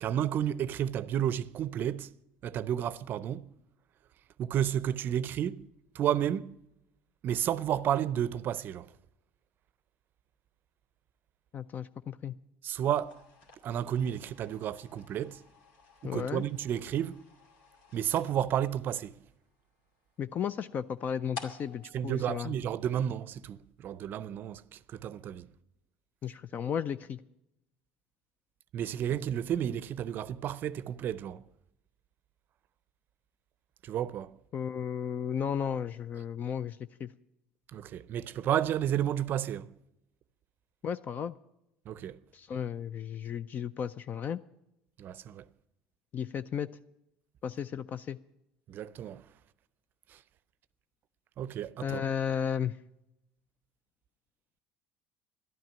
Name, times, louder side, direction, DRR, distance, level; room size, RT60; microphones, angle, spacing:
voice 1, 0.0-2.1 2.4-3.4 4.4-5.7 5.9-6.6 7.2-8.9 12.6-13.2 13.6-15.4 16.0-17.2 17.9-19.1 21.9-25.5 28.7-31.4 33.8-34.4 37.7-39.7 41.9-42.2 45.0-45.4 48.7-49.2 50.1-50.2 51.4-52.0, right 10 dB, 50° right, 0.5 m, -31 dB
voice 2, 11.5-12.3 16.0-16.4 20.2-22.5 26.2-27.2 34.5-37.1 40.8-41.3 42.3-44.4 46.1-46.7 47.4-48.2 51.8-52.7, left 8 dB, 40° left, 0.4 m, -34 dB
sound 1, 12.9-23.3, left 4 dB, 85° left, 2.3 m, -52 dB
12.5 x 9.3 x 8.7 m
supercardioid pair, 95°, 4 cm